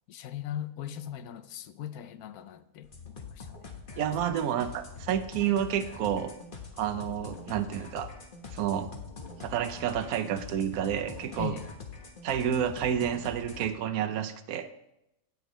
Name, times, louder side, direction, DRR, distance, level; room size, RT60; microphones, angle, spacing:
voice 1, 0.1-3.6 4.4-4.5 11.4-11.7, left 10 dB, 85° left, 1.1 m, -39 dB
sound 1, 2.8-13.7, left 5 dB, 35° left, 1.3 m, -44 dB
voice 2, 4.0-6.3 6.8-8.1 8.5-8.9 9.4-11.5 12.2-14.7, right 9 dB, 80° right, 1.1 m, -30 dB
17.0 x 6.4 x 3.1 m
omnidirectional pair, 1.6 m